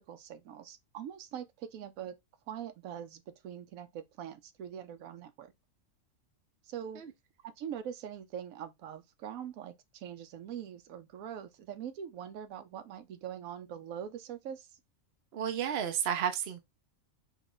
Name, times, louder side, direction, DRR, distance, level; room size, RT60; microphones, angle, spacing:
voice 1, 0.1-2.2 2.5-5.5 6.6-7.0 7.4-14.7, right 9 dB, 85° right, 1.1 m, -43 dB
voice 2, 15.3-16.6, right 9 dB, 55° right, 0.9 m, -32 dB
5.0 x 2.4 x 3.8 m
omnidirectional pair, 1.4 m